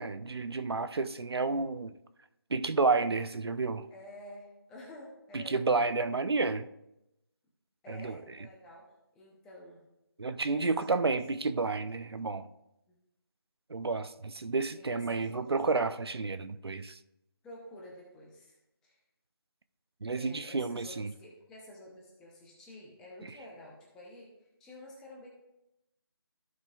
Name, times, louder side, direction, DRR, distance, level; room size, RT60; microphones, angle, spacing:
voice 1, 0.0-1.9 2.5-3.9 5.3-6.7 7.9-8.2 10.2-12.4 13.7-17.0 20.0-21.1, right 3 dB, 80° right, 0.6 m, -30 dB
voice 2, 3.9-5.6 7.8-8.9 9.1-9.8 10.4-11.0 12.9-13.0 14.2-14.3 14.7-15.6 17.4-18.6 18.8-19.0 20.1-24.3 24.6-25.3, left 1 dB, 5° left, 0.7 m, -50 dB
14.5 x 5.1 x 2.4 m
figure-of-eight pair, 165°, 13 cm